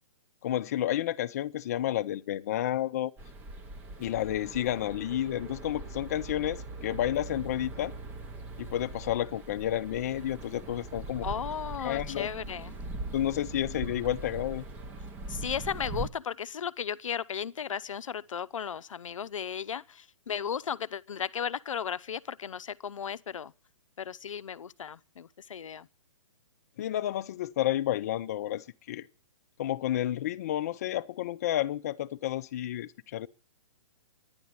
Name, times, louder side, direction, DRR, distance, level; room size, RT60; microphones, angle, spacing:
voice 1, 0.4-3.1 4.0-7.9 8.6-11.3 11.8-12.3 13.1-14.6 26.8-29.0 29.6-33.3, left 12 dB, 30° left, 0.6 m, -31 dB
sound 1, 3.2-16.1, right 2 dB, 10° right, 0.7 m, -41 dB
voice 2, 11.2-12.7 15.3-23.5 24.0-25.9, left 8 dB, 90° left, 0.8 m, -35 dB
11.0 x 10.5 x 8.7 m
hypercardioid pair, 170°, 16 cm